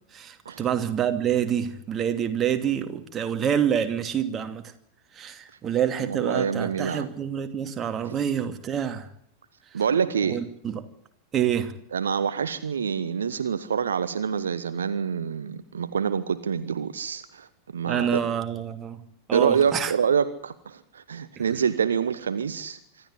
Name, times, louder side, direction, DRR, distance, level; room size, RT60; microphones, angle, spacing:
voice 1, 0.1-4.7 5.1-9.1 10.3-10.8 11.3-11.7 17.8-19.0 19.3-19.9, right 9 dB, 25° right, 7 dB, 2.6 m, -27 dB
voice 2, 6.0-7.1 9.7-10.4 11.9-18.2 19.3-22.8, right 7 dB, 70° right, 13 dB, 1.2 m, -26 dB
25.5 x 13.5 x 9.9 m, 0.69 s
figure-of-eight pair, 90°, 0 cm